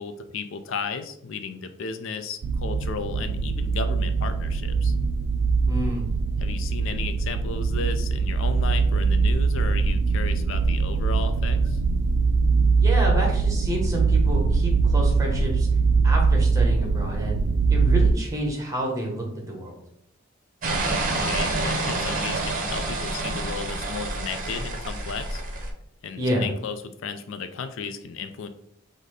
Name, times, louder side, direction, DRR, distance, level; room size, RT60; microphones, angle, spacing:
voice 1, 0.0-4.9 6.4-11.8 21.1-25.4 26.0-28.5, left 5 dB, 65° left, 9 dB, 0.4 m, -34 dB
sound 1, 2.4-18.1, right 4 dB, 75° right, 0.4 m, -22 dB
voice 2, 5.7-6.0 12.8-15.7 16.0-17.4 17.7-19.8 26.2-26.5, equal, 15° right, -1 dB, 1.0 m, -29 dB
sound 2, 20.6-25.7, right 2 dB, 40° right, 0.7 m, -28 dB
4.0 x 2.6 x 4.8 m, 0.73 s
head